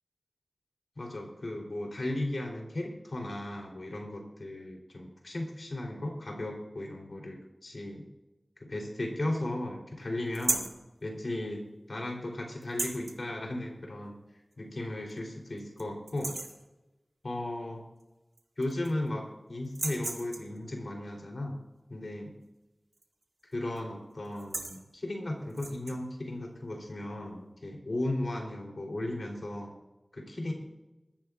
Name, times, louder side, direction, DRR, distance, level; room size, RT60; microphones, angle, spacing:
voice 1, 1.0-8.0 8.7-10.7 11.0-14.1 14.6-16.3 17.2-17.8 18.6-21.6 21.9-22.3 23.5-29.7 30.1-30.5, left 1 dB, 75° left, 0 dB, 3.6 m, -36 dB
sound 1, 10.3-10.8 12.6-13.2 14.5-14.6 15.1-15.2 15.6-16.6 18.0-18.1 18.4-19.1 19.6-20.6 22.9-23.2 23.5-23.8 24.2-24.8 25.5-26.0, right 2 dB, 80° right, 1.9 m, -35 dB
21.5 x 14.0 x 2.5 m, 1.0 s
wide cardioid pair, 60°, 0 cm